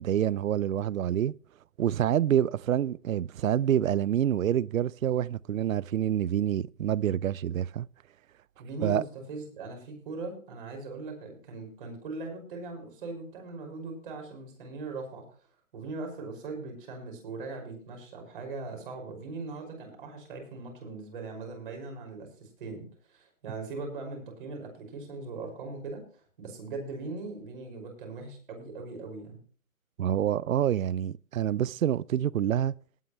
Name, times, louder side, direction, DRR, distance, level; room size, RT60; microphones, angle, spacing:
voice 1, 0.0-1.3 1.8-7.9 8.8-9.0 30.0-32.7, right 10 dB, 70° right, 0.5 m, -27 dB
voice 2, 8.6-15.2 15.7-29.4, right 3 dB, 40° right, 5.7 m, -40 dB
19.5 x 9.2 x 3.1 m
hypercardioid pair, 160°, 42 cm